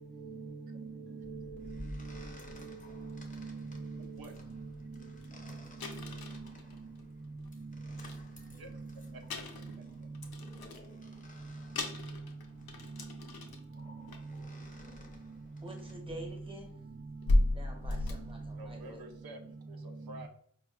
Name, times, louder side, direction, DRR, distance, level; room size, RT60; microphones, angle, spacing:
voice 1, 0.2-1.8 2.1-2.2 2.6-4.2 5.9-6.1, right 4 dB, 35° right, 1 dB, 0.4 m, -43 dB
sound 1, 1.2-16.0, left 1 dB, 20° left, 0.6 m, -54 dB
sound 2, 2.6-2.7 3.1-3.3 4.0-4.1 4.3-4.5 4.9-5.0 5.2-5.3 5.8-7.5 7.9-8.8 9.2-10.9 11.4-11.5 11.8-13.7 14.1-14.4 15.5-15.6 16.1-19.1, left 1 dB, 85° left, 0.6 m, -35 dB
voice 2, 8.5-8.8 9.1-9.4 9.8-10.1 10.6-10.8 18.5-20.3, right 1 dB, 85° right, 4 dB, 0.6 m, -50 dB
voice 3, 15.6-16.7 17.5-19.0, right 1 dB, 15° right, 1 dB, 0.8 m, -47 dB
4.6 x 2.2 x 2.4 m, 0.63 s
wide cardioid pair, 90°, 36 cm